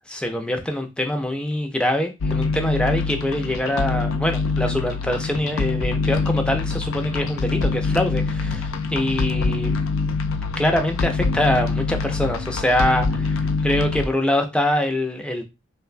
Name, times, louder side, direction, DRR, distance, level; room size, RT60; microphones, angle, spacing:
voice 1, 0.1-9.7 10.6-15.4, left 1 dB, 5° left, 0.3 m, -24 dB
sound 1, 2.2-14.1, left 4 dB, 85° left, 0.4 m, -24 dB
3.1 x 2.1 x 2.4 m
head